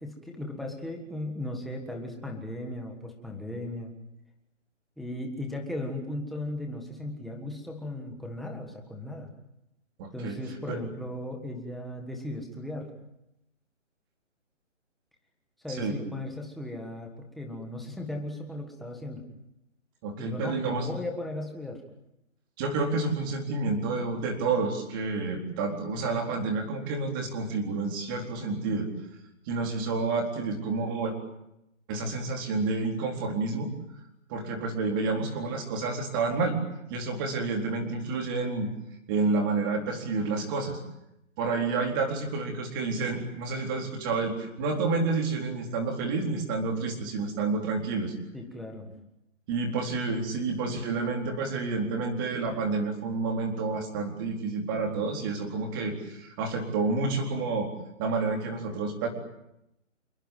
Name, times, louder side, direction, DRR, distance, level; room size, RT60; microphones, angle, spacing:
voice 1, 0.0-3.9 5.0-9.3 10.1-12.9 15.6-19.2 20.2-21.8 48.3-48.9, left 1 dB, ahead, 1 dB, 1.5 m, -37 dB
voice 2, 10.0-10.4 10.7-10.8 15.7-16.0 20.0-20.9 22.6-28.9 29.5-31.1 31.9-33.7 34.3-36.6 36.9-38.7 39.1-40.8 41.4-48.1 49.5-57.7 58.0-59.1, right 3 dB, 15° right, 3 dB, 4.0 m, -29 dB
28.0 x 20.5 x 9.1 m, 0.84 s
hypercardioid pair, 175°, 38 cm